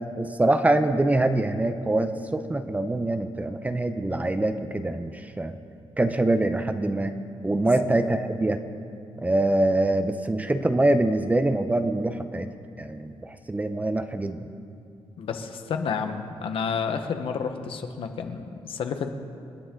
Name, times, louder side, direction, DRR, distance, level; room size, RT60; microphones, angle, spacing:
voice 1, 0.2-5.6 6.0-7.1 7.4-8.6 9.2-12.5 12.8-14.5, right 2 dB, 15° right, 9 dB, 0.7 m, -24 dB
voice 2, 15.2-19.1, left 6 dB, 65° left, 6 dB, 1.2 m, -30 dB
27.5 x 10.0 x 3.8 m, 2.5 s
cardioid pair, 100°, 10 cm